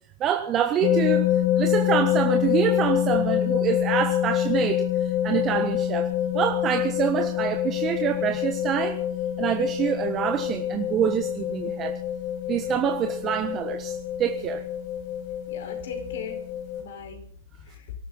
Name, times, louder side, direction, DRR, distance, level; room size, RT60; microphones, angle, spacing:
voice 1, 0.2-1.3 1.6-9.0 9.4-12.0 12.5-14.6, right 9 dB, 25° right, 6 dB, 1.3 m, -26 dB
sound 1, 0.8-16.8, left 11 dB, 45° left, 6.0 m, -26 dB
voice 2, 15.5-16.4 16.8-17.3 17.6-17.9, left 6 dB, 65° left, 5 dB, 5.1 m, -39 dB
24.5 x 13.0 x 4.2 m, 0.62 s
hypercardioid pair, 120°, 0 cm